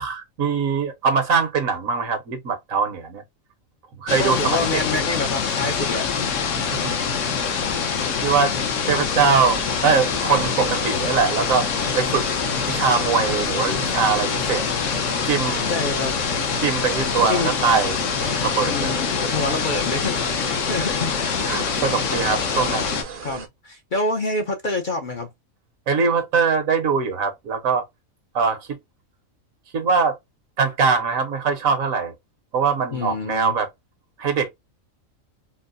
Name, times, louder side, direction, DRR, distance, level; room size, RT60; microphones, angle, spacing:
voice 1, 0.0-3.2 4.0-5.0 6.5-6.9 8.2-8.6 8.8-11.7 11.9-12.3 12.7-14.7 15.3-15.7 16.6-19.0 21.5-23.0 25.9-27.8 28.3-28.8 29.7-30.2 30.6-32.1 32.5-33.7 34.2-34.5, right 5 dB, 80° right, 1.4 m, -22 dB
sound 1, 4.1-23.0, left 6 dB, 65° left, 1.1 m, -25 dB
voice 2, 4.2-6.1 15.7-16.2 17.3-17.5 18.7-21.1 23.2-25.3 32.9-33.5, left 3 dB, 50° left, 0.7 m, -27 dB
sound 2, 7.9-23.5, right 6 dB, 50° right, 0.7 m, -37 dB
4.5 x 2.1 x 2.4 m
omnidirectional pair, 1.4 m